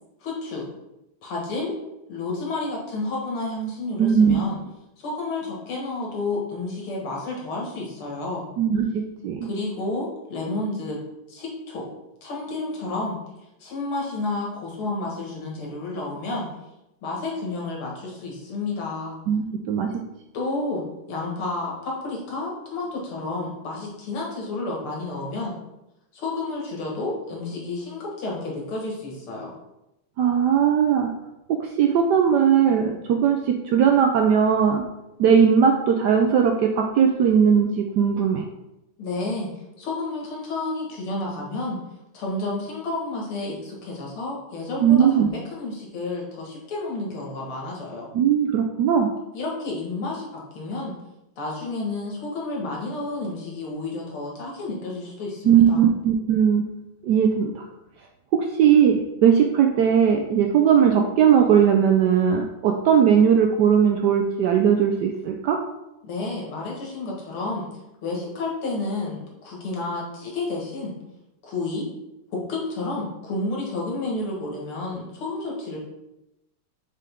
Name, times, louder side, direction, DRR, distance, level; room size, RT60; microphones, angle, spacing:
voice 1, 0.2-0.7 1.2-1.7 2.1-4.6 5.0-8.5 9.4-11.0 11.3-11.9 12.2-13.2 13.6-16.5 17.0-19.2 20.3-25.6 26.1-29.5 39.0-39.5 39.8-41.8 42.1-48.1 49.3-50.9 51.4-55.9 66.0-67.7 68.0-71.0 71.4-71.9 72.3-75.8, left 2 dB, 80° left, -2 dB, 2.4 m, -30 dB
voice 2, 4.0-4.4 8.6-9.5 19.3-20.0 30.2-31.1 31.5-34.8 35.2-38.5 44.8-45.3 48.1-49.1 55.4-56.7 57.0-57.6 58.3-65.6, right 7 dB, 80° right, 3 dB, 0.9 m, -19 dB
6.9 x 4.6 x 3.5 m, 0.92 s
omnidirectional pair, 2.3 m